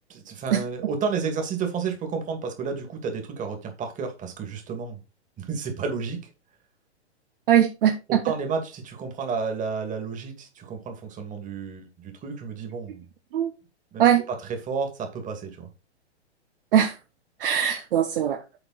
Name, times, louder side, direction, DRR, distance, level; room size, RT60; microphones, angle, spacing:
voice 1, 0.1-5.0 5.4-6.2 8.1-13.0 13.9-14.0 14.5-15.7, right 5 dB, 20° right, 2.5 m, -31 dB
voice 2, 7.5-8.2 13.3-13.5 14.0-14.2 16.7-16.9 17.4-18.4, right 10 dB, 50° right, 1.1 m, -20 dB
8.1 x 5.3 x 4.2 m
hypercardioid pair, 115°, 34 cm